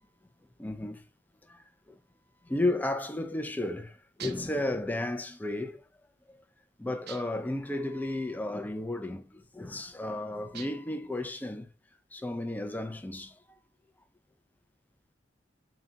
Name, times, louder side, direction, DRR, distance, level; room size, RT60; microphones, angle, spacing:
voice 1, 0.6-1.0 1.5-2.0 2.4-5.8 6.3-6.4 6.8-11.7 12.1-13.4, left 1 dB, 10° left, 0.4 m, -33 dB
sound 1, 4.2-4.6 7.1-7.5 10.5-11.0, right 9 dB, 60° right, 0.5 m, -45 dB
3.8 x 2.2 x 3.9 m
head